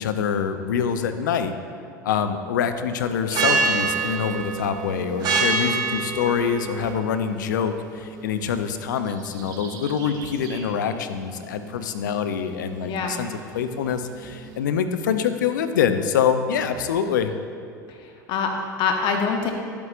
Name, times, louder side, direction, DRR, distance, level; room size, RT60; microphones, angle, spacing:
voice 1, 0.0-1.5 2.0-17.3, left 7 dB, 75° left, 8 dB, 0.5 m, -25 dB
sound 1, 3.3-14.6, right 4 dB, 45° right, 1.3 m, -29 dB
voice 2, 12.8-13.2 17.9-19.5, left 5 dB, 50° left, 3 dB, 0.9 m, -25 dB
11.5 x 8.2 x 2.5 m, 2.3 s
hypercardioid pair, 75°, 10 cm